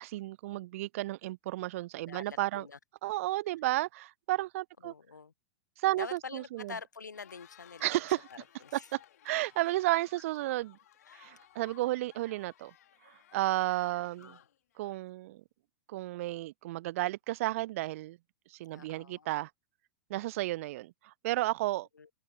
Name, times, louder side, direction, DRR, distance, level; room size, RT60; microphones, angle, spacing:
voice 1, 0.0-2.7 3.0-4.9 5.8-6.7 7.8-8.2 8.7-9.0 9.2-10.8 11.1-12.7 13.0-14.4 14.8-15.4 15.9-18.2 18.5-19.5 20.1-21.9, right 17 dB, 50° right, 0.6 m, -33 dB
voice 2, 2.0-2.8 4.8-5.3 6.0-8.0 8.3-8.9 11.0-11.3 14.2-14.5 18.7-19.3 21.9-22.1, left 5 dB, 80° left, 0.8 m, -46 dB
Cheering, 7.0-15.3, left 11 dB, 60° left, 2.8 m, -59 dB
open air
figure-of-eight pair, 100°, 10 cm